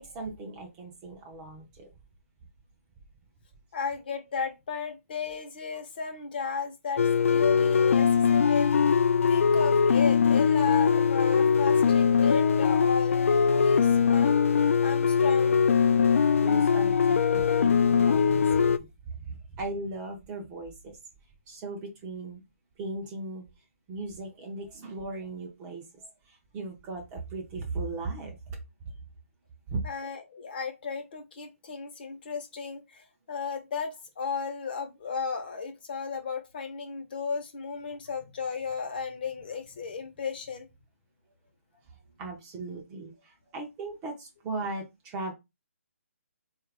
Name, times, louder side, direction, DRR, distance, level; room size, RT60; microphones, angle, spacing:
voice 1, 0.0-1.9 16.4-21.0 21.5-22.4 22.8-23.4 23.9-28.9 29.7-29.8 41.9-45.3, right 3 dB, 15° right, 0.5 m, -38 dB
voice 2, 3.7-8.7 9.3-14.4 14.8-15.6 29.8-40.7, left 5 dB, 40° left, 0.8 m, -34 dB
sound 1, 7.0-18.8, left 6 dB, 65° left, 0.3 m, -22 dB
3.9 x 2.4 x 3.3 m
hypercardioid pair, 165°, 8 cm